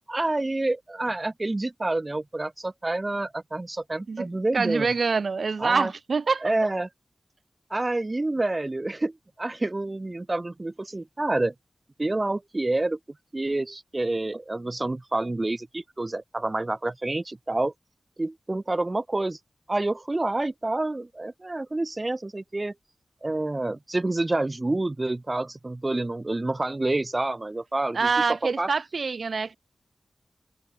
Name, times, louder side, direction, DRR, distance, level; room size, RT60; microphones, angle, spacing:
voice 1, 0.1-4.9 5.6-5.9 6.4-6.9 7.7-11.5 12.0-13.0 13.3-17.7 18.2-19.4 19.7-22.7 23.2-28.1 28.4-28.7, right 2 dB, 35° right, 2.2 m, -28 dB
voice 2, 4.5-6.5 27.9-29.6, right 4 dB, 70° right, 2.7 m, -25 dB
cardioid pair, 45°, 0 cm